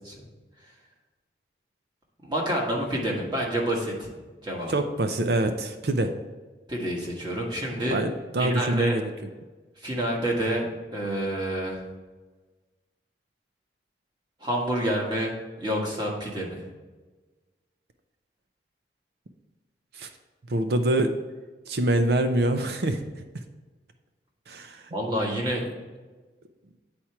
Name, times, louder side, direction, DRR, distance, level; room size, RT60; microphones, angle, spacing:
voice 1, 2.2-4.1 4.4-4.7 6.7-8.0 8.4-9.0 9.8-10.6 10.9-11.8 14.4-15.3 15.6-16.6 24.9-25.7, right 1 dB, 25° right, -2 dB, 1.5 m, -28 dB
voice 2, 4.7-6.1 7.8-9.0 19.9-20.1 20.5-21.1 21.7-23.2 24.5-24.8, right 1 dB, 65° right, 7 dB, 0.5 m, -25 dB
8.6 x 4.4 x 4.7 m, 1.3 s
head